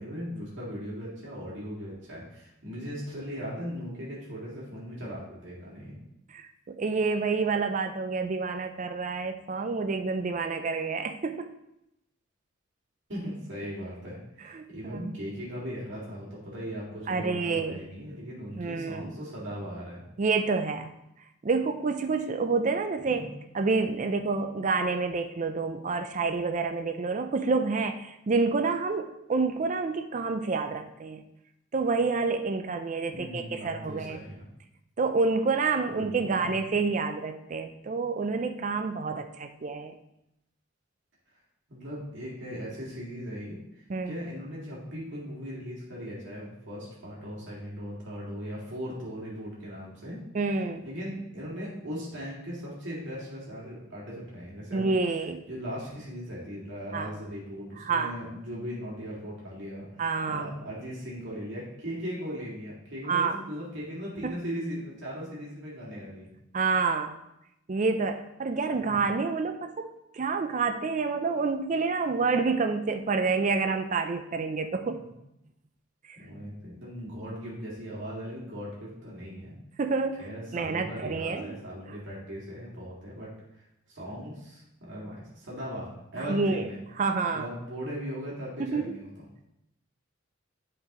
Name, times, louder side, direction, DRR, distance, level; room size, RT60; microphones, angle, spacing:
voice 1, 0.0-6.0 13.1-20.0 23.1-23.3 33.1-34.4 35.8-36.5 41.7-50.2 50.8-54.9 55.5-66.3 68.7-69.0 74.8-74.9 76.2-79.6 80.2-86.8 87.3-89.2, equal, 65° right, -6 dB, 2.3 m, -38 dB
voice 2, 6.3-11.5 14.5-14.7 14.9-15.1 17.1-17.8 18.5-19.1 20.2-20.9 21.4-23.3 23.5-31.2 31.7-34.2 35.0-39.9 43.9-44.1 50.3-50.8 54.7-55.4 56.9-57.1 57.8-58.1 60.0-60.5 63.1-63.4 64.2-64.3 66.5-67.1 67.7-75.0 76.1-76.2 79.8-80.3 80.5-81.5 86.3-86.7 87.0-87.5 88.6-89.0, right 4 dB, 40° right, 7 dB, 0.4 m, -28 dB
11.0 x 4.7 x 3.0 m, 0.83 s
head